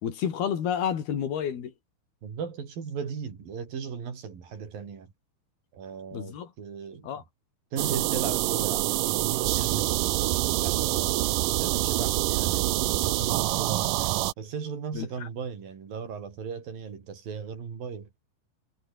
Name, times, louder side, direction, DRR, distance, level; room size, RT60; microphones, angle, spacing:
voice 1, 0.0-1.7 6.1-6.5 7.0-7.2 14.9-15.3, left 8 dB, 70° left, 4.9 m, -30 dB
voice 2, 2.2-5.1 5.7-7.2 7.7-10.3 10.6-18.1, right 6 dB, 60° right, 5.7 m, -37 dB
sound 1, 7.8-14.3, right 17 dB, 75° right, 2.1 m, -26 dB
omnidirectional pair, 4.7 m